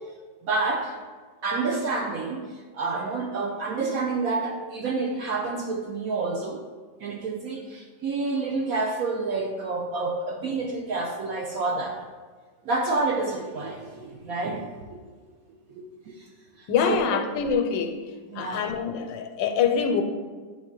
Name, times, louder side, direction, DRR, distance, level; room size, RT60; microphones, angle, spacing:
voice 1, 0.4-0.9 1.4-2.4 2.7-6.6 7.0-12.0 12.7-15.0 15.7-16.1 16.6-17.0 18.3-18.6, right 3 dB, 70° right, 1 dB, 0.8 m, -28 dB
voice 2, 16.7-18.0 18.3-20.0, left 6 dB, 90° left, 6 dB, 1.3 m, -25 dB
8.3 x 3.5 x 3.7 m, 1.5 s
omnidirectional pair, 2.0 m